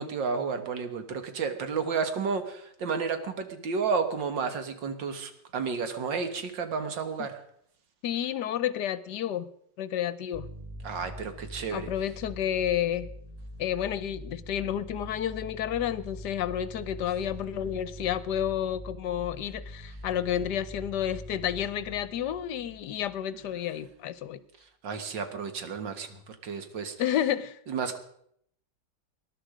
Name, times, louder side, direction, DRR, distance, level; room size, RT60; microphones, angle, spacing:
voice 1, 0.0-7.4 10.8-11.9 24.8-27.0 27.7-28.0, right 5 dB, 80° right, 8 dB, 2.2 m, -32 dB
voice 2, 8.0-9.5 9.8-10.5 11.7-13.1 13.6-24.4 27.0-27.6, left 10 dB, 70° left, 16 dB, 1.3 m, -30 dB
sound 1, 10.3-23.5, equal, 20° right, 4.0 m, -44 dB
19.5 x 11.5 x 5.0 m, 0.69 s
omnidirectional pair, 1.9 m